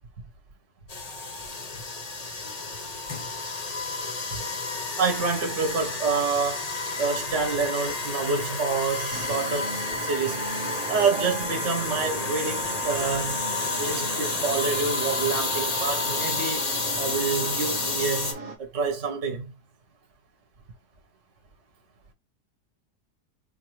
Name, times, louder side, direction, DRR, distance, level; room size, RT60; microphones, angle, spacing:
sound 1, 0.9-18.3, left 3 dB, 45° left, 0.5 m, -30 dB
voice 1, 5.0-6.7 7.0-10.5 10.9-13.4 13.8-16.7 17.0-19.5, right 5 dB, 50° right, 1.1 m, -27 dB
sound 2, 9.1-18.6, right 2 dB, 80° right, 0.3 m, -38 dB
4.4 x 2.6 x 3.0 m
omnidirectional pair, 1.8 m